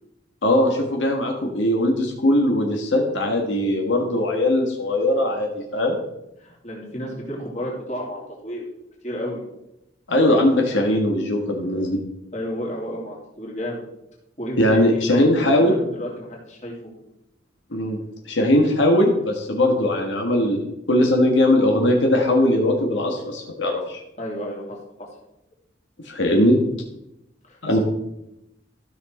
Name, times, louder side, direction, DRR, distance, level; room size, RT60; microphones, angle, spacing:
voice 1, 0.4-6.0 10.1-12.0 14.6-15.7 17.7-18.0 18.3-24.0 26.0-26.6 27.6-27.8, left 1 dB, 85° left, 1 dB, 1.6 m, -20 dB
voice 2, 6.4-8.7 9.0-9.4 12.3-13.8 14.4-16.8 24.2-24.8 27.4-27.8, equal, 40° left, -2 dB, 2.7 m, -32 dB
13.5 x 6.1 x 4.4 m, 0.85 s
head